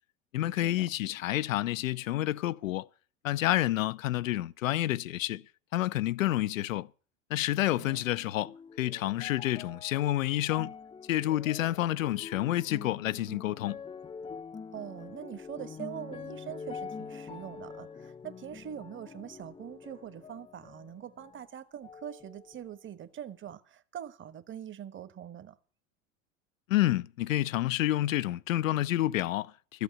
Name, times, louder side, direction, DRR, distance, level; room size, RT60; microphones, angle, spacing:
voice 1, 0.3-2.9 3.2-5.4 5.7-6.9 7.3-10.7 11.1-13.8 26.7-29.8, left 14 dB, 85° left, 0.6 m, -29 dB
voice 2, 7.8-8.1 14.7-25.6, right 10 dB, 30° right, 1.2 m, -43 dB
sound 1, 8.0-21.5 21.8-22.8 23.5-23.6, left 5 dB, 15° left, 0.5 m, -45 dB
13.5 x 8.2 x 8.3 m
hypercardioid pair, 85°, 38 cm